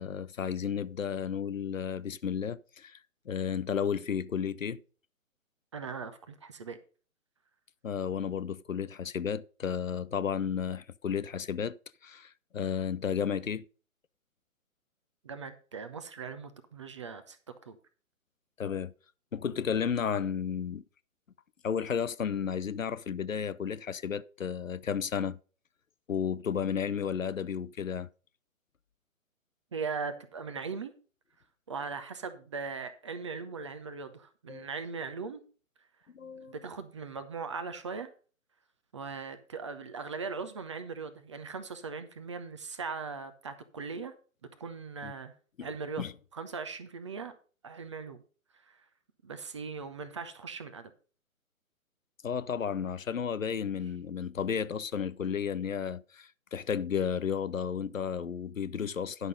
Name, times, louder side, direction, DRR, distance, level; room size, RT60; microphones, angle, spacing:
voice 1, 0.0-3.0 3.3-4.8 7.8-11.8 12.0-13.6 18.6-18.9 19.3-20.8 21.6-25.4 26.1-28.1 34.5-34.6 36.1-36.5 45.0-45.1 45.6-45.7 46.0-46.1 52.2-59.3, left 7 dB, 65° left, 0.7 m, -33 dB
voice 2, 5.7-6.8 15.2-17.4 17.6-17.8 29.7-30.9 31.7-35.5 36.4-38.1 38.9-44.1 44.6-45.3 45.6-46.0 46.3-47.3 47.6-48.2 48.7-48.8 49.2-50.9, right 5 dB, 20° right, 0.7 m, -39 dB
10.5 x 6.0 x 5.2 m
figure-of-eight pair, 135°, 42 cm